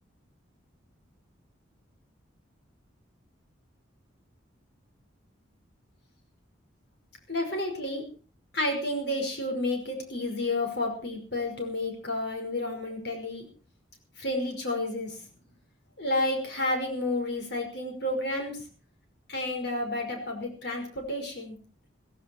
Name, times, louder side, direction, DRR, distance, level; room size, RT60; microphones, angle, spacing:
voice 1, 7.3-8.0 8.5-13.4 14.2-15.3 16.0-18.6 19.3-21.6, left 1 dB, 55° left, 2 dB, 5.4 m, -31 dB
16.0 x 15.5 x 4.7 m, 0.40 s
head